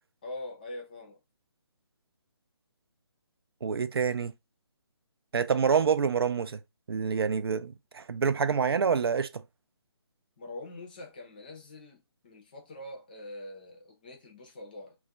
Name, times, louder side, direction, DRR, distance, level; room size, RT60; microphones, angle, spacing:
voice 1, 0.2-1.2 10.4-14.9, left 2 dB, 20° left, 0.5 m, -43 dB
voice 2, 3.6-4.3 5.3-6.6 6.9-9.4, right 6 dB, 60° right, 0.4 m, -27 dB
2.3 x 2.1 x 3.8 m
hypercardioid pair, 170°, 14 cm